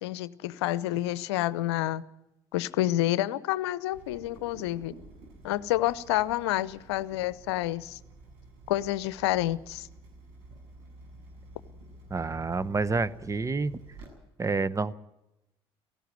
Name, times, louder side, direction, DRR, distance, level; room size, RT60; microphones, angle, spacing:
voice 1, 0.0-2.0 2.5-4.9 5.4-8.0 8.7-9.9, left 15 dB, 80° left, 19 dB, 0.7 m, -29 dB
Water tap faucet / Drip, 3.9-14.1, right 1 dB, 75° right, 7.5 m, -51 dB
voice 2, 12.1-13.8 14.4-14.9, right 4 dB, 20° right, 18 dB, 1.0 m, -28 dB
18.0 x 16.0 x 9.2 m, 0.94 s
hypercardioid pair, 60°, 14 cm